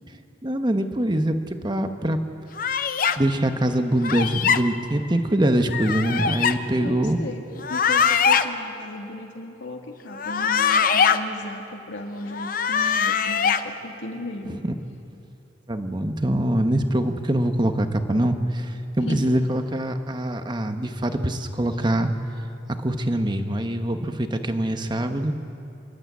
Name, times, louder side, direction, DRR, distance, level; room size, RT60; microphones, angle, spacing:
voice 1, 0.4-2.2 3.2-7.2 14.5-14.6 15.7-22.1 22.8-25.3, right 1 dB, 25° right, 7 dB, 1.0 m, -24 dB
sound 1, 2.6-3.2 4.0-4.6 5.7-6.5 7.6-8.4 10.1-11.2 12.3-13.6, left 6 dB, 50° left, 0.7 m, -22 dB
voice 2, 6.8-7.4 7.7-14.6 19.1-19.3, left 2 dB, 85° left, 3 dB, 2.1 m, -36 dB
27.5 x 12.0 x 8.3 m, 2.7 s
head